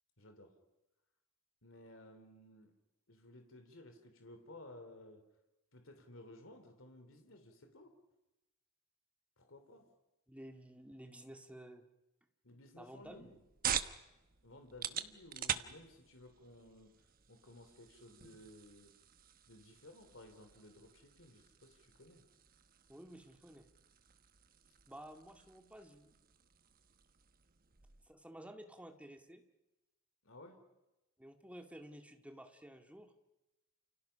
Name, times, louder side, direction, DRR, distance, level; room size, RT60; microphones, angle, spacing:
voice 1, 0.2-0.6 1.6-2.7 3.1-5.2 5.7-8.0 9.4-9.9 12.4-13.4 14.4-16.9 17.3-18.9 19.5-22.2 30.2-30.6, left 1 dB, 65° left, 6 dB, 3.0 m, -56 dB
voice 2, 10.3-11.9 12.8-13.3 22.9-23.7 24.9-26.2 28.1-29.4 31.2-33.1, right 1 dB, 5° right, 4 dB, 1.9 m, -53 dB
sound 1, 13.0-28.1, right 9 dB, 40° right, 1.0 m, -46 dB
29.5 x 29.0 x 5.8 m, 0.99 s
head